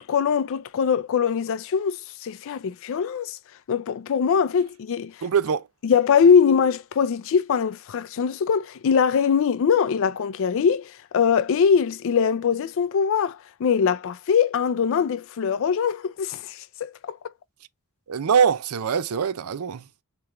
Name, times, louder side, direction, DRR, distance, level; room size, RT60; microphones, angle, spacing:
voice 1, 0.0-3.4 3.7-5.1 5.8-17.2, left 6 dB, 65° left, 0.4 m, -22 dB
voice 2, 5.2-5.7 18.1-19.8, right 7 dB, 80° right, 0.5 m, -23 dB
3.4 x 3.0 x 3.6 m
head